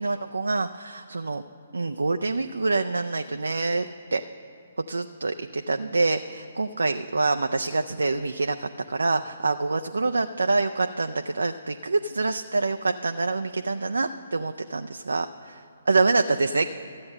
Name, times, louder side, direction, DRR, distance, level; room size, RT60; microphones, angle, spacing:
voice 1, 0.0-1.4 1.7-4.2 4.9-16.7, right 3 dB, 75° right, 6 dB, 0.4 m, -26 dB
14.0 x 8.7 x 6.5 m, 2.8 s
figure-of-eight pair, 130°, 0 cm